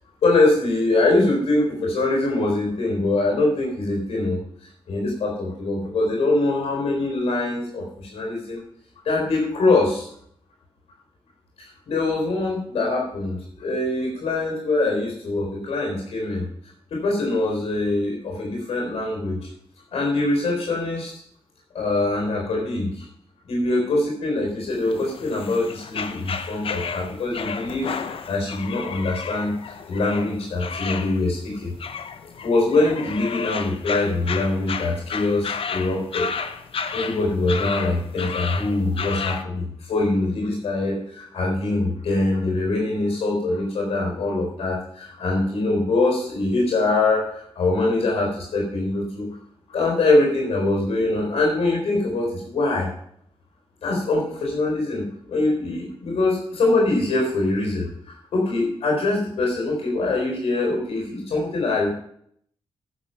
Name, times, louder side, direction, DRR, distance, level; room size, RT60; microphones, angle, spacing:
voice 1, 0.2-4.4 4.9-8.6 9.0-10.1 11.6-16.4 16.9-19.5 19.9-21.1 21.7-23.1 23.5-27.9 28.3-29.5 29.9-31.7 32.4-36.3 36.9-49.3 49.7-52.9 53.8-61.9, left 2 dB, 90° left, 0 dB, 4.0 m, -23 dB
sound 1, 24.7-39.4, left 6 dB, 65° left, 0.8 m, -32 dB
11.0 x 7.5 x 5.7 m, 0.67 s
wide cardioid pair, 105°, 10 cm